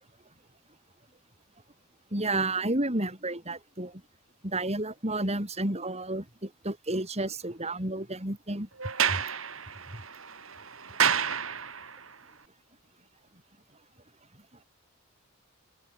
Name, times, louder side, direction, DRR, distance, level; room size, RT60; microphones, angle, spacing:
voice 1, 2.1-4.0 4.4-8.7 9.1-9.2 9.9-10.0, right 2 dB, 30° right, 6.6 m, -31 dB
Sliding door, 8.8-12.1, right 7 dB, 75° right, 5.2 m, -30 dB
head